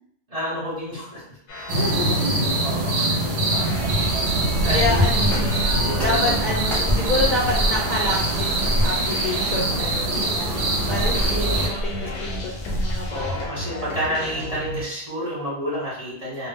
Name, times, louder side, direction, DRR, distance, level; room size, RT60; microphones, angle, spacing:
voice 1, 0.3-1.2 1.5-1.8 2.6-3.1 4.6-5.1 5.8-6.4 13.1-16.5, equal, 35° right, -7 dB, 0.9 m, -30 dB
sound 1, 1.5-14.8, left 2 dB, 80° left, 0.9 m, -35 dB
voice 2, 1.7-2.4 3.1-3.2 4.6-13.5, left 2 dB, 55° left, -5 dB, 0.6 m, -28 dB
sound 2, 1.7-11.7, right 2 dB, 65° right, 0.8 m, -23 dB
sound 3, 3.5-13.5, left 1 dB, ahead, 0.6 m, -28 dB
2.1 x 2.0 x 3.4 m, 0.68 s
omnidirectional pair, 1.2 m